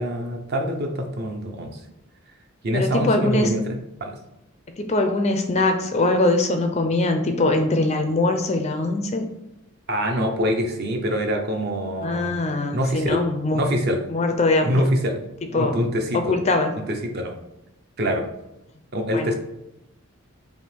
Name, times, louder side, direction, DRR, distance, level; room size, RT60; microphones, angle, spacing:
voice 1, 0.0-1.8 2.6-4.1 9.9-12.4 12.7-13.2 13.5-14.0 14.6-15.2 15.5-16.4 16.9-17.4 18.0-18.2 18.9-19.3, equal, 45° right, 3 dB, 0.6 m, -25 dB
voice 2, 2.7-3.5 4.8-9.3 12.0-13.6 14.1-14.8 15.5-15.8 16.1-16.7 19.1-19.3, left 2 dB, 30° left, 5 dB, 0.4 m, -22 dB
3.5 x 2.7 x 4.3 m, 0.89 s
head